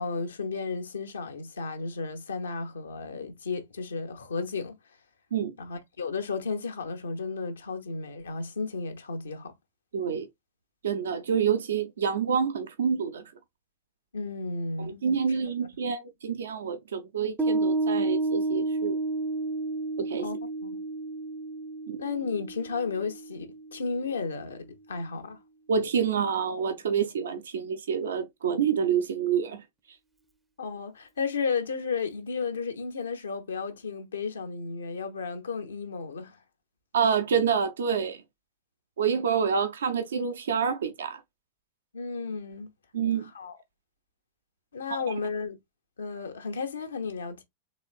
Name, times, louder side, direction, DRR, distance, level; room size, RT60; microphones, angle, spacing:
voice 1, 0.0-4.8 5.6-9.5 14.1-15.0 20.2-20.3 20.6-20.8 22.0-25.4 26.9-27.0 30.6-36.4 41.9-42.7 43.3-43.6 44.7-45.6 46.0-47.4, left 4 dB, 70° left, 0.8 m, -33 dB
voice 2, 9.9-10.3 10.8-13.2 14.8-19.0 20.0-20.3 21.9-22.0 25.7-29.6 36.9-38.2 39.0-41.2 42.9-43.3 45.1-45.2, right 7 dB, 65° right, 0.5 m, -27 dB
Piano, 17.4-24.1, right 2 dB, 10° right, 0.5 m, -31 dB
4.0 x 3.1 x 2.4 m
figure-of-eight pair, 90°, 0 cm